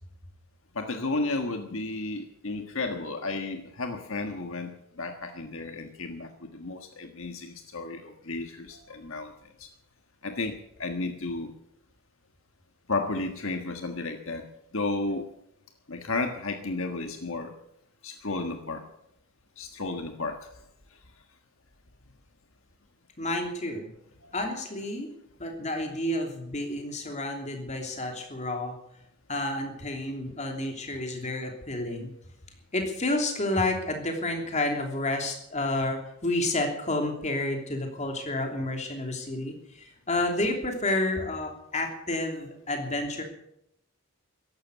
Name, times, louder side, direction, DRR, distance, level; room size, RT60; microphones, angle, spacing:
voice 1, 0.7-4.7 5.0-9.3 9.6-9.7 10.2-11.5 12.9-14.4 14.7-15.3 15.9-17.5 18.0-18.8 19.6-20.4 24.2-24.3, left 3 dB, 60° left, 5 dB, 1.5 m, -33 dB
voice 2, 23.2-23.9 24.3-25.1 25.4-28.8 29.3-32.1 32.7-43.2, left 2 dB, 30° left, 3 dB, 3.1 m, -30 dB
14.5 x 12.0 x 8.3 m, 0.77 s
head